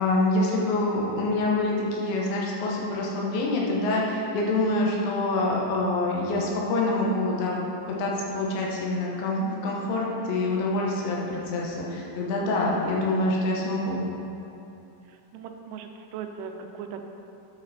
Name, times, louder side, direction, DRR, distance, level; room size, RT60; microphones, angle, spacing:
voice 1, 0.0-14.0, left 2 dB, 75° left, -3 dB, 3.2 m, -26 dB
voice 2, 15.1-17.1, right 6 dB, 85° right, 5 dB, 3.1 m, -39 dB
9.8 x 6.5 x 4.1 m, 2.9 s
omnidirectional pair, 5.5 m